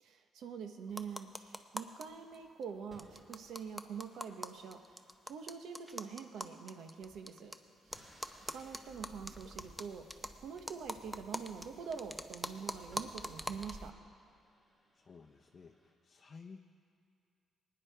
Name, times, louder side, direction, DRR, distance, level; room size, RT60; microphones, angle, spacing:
voice 1, 0.0-7.5 7.9-8.1 8.4-10.1 10.4-13.9, right 6 dB, 75° right, 6 dB, 0.9 m, -45 dB
sound 1, 0.9-2.0 2.3-2.4 2.6-2.7 3.0-7.5 7.9-13.9, equal, 5° right, 0.5 m, -44 dB
sound 2, 1.6-2.2 2.9-12.0 12.5-12.6 12.9-15.9, equal, 25° right, 3.7 m, -67 dB
voice 2, 14.9-16.6, left 5 dB, 40° left, 2 dB, 0.6 m, -54 dB
19.5 x 9.7 x 3.4 m, 2.3 s
cardioid pair, 90°, 0 cm